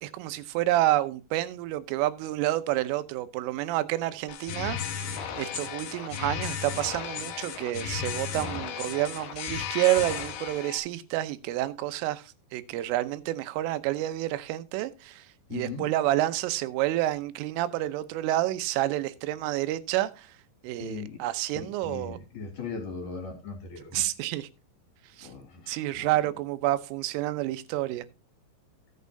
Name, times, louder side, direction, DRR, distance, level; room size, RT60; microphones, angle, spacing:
voice 1, 0.0-5.0 5.4-15.3 15.5-20.3 20.6-22.2 23.9-24.5 25.2-25.3 25.7-28.1, right 15 dB, 90° right, 3.4 m, -29 dB
sound 1, 4.3-10.8, left 8 dB, 65° left, 3.1 m, -34 dB
voice 2, 15.5-15.9 20.8-21.2 21.5-24.1 25.2-26.4, left 4 dB, 50° left, 3.6 m, -39 dB
16.0 x 8.4 x 2.7 m
omnidirectional pair, 5.6 m